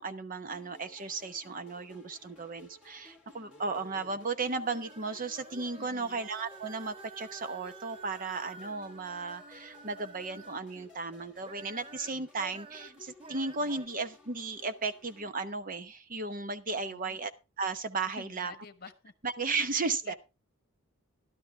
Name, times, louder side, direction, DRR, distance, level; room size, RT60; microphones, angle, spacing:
voice 1, 0.0-17.3 17.6-18.5 19.2-20.1, right 4 dB, 45° right, 10 dB, 0.9 m, -35 dB
sound 1, 0.5-15.3, left 3 dB, 5° right, 1.9 m, -58 dB
sound 2, 3.4-10.9 11.3-13.9, right 4 dB, 25° right, 0.5 m, -50 dB
voice 2, 5.7-6.2 16.8-17.2 18.1-19.1 20.0-20.1, left 4 dB, 50° left, 11 dB, 1.2 m, -50 dB
12.5 x 12.0 x 3.6 m, 0.28 s
head